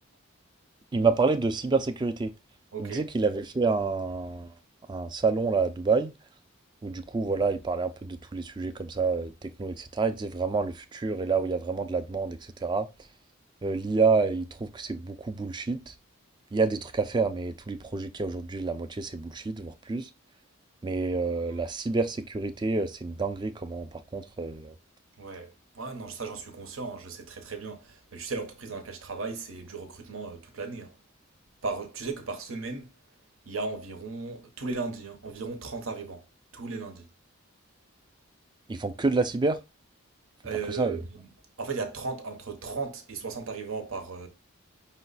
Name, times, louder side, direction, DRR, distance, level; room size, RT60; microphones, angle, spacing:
voice 1, 0.9-2.3 2.8-4.5 4.9-6.1 6.8-12.9 13.6-15.9 16.5-20.1 20.8-24.7 38.7-39.6 40.7-41.0, right 4 dB, 20° right, 0.3 m, -28 dB
voice 2, 2.7-3.0 25.2-31.0 31.6-32.9 33.5-36.3 36.5-37.1 40.4-41.3 41.6-44.3, right 4 dB, 80° right, 0.9 m, -36 dB
5.6 x 2.2 x 4.0 m
head